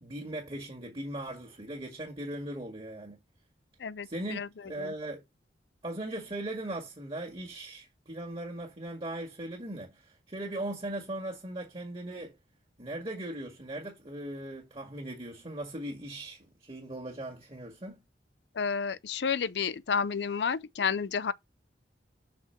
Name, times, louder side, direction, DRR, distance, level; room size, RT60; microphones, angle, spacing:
voice 1, 0.0-3.2 4.0-5.2 5.8-12.3 12.8-18.0, right 1 dB, 30° right, 1.8 m, -39 dB
voice 2, 3.8-4.5 4.8-4.9 18.6-21.3, left 6 dB, 75° left, 0.5 m, -31 dB
6.0 x 4.3 x 5.7 m
head